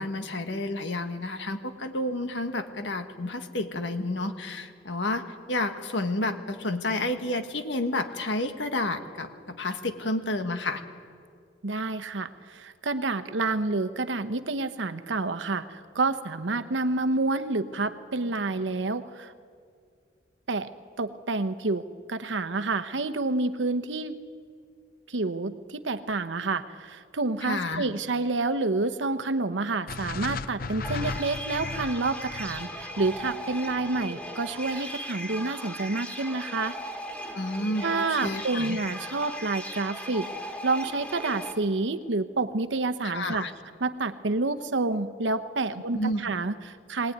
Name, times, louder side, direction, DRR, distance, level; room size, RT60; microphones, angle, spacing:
voice 1, 0.0-5.2 5.5-10.8 27.4-27.8 37.3-38.8 43.0-43.5 45.9-46.2, left 2 dB, 80° left, 7 dB, 1.6 m, -30 dB
voice 2, 11.6-19.3 20.5-20.7 21.0-24.1 25.1-36.8 37.8-40.3 40.6-43.4 43.8-47.1, right 3 dB, 85° right, 10 dB, 1.0 m, -29 dB
sound 1, 29.9-34.1, left 3 dB, 50° left, 0.6 m, -36 dB
sound 2, 30.8-41.5, equal, 10° left, 1.7 m, -38 dB
21.0 x 19.0 x 9.4 m, 2.2 s
head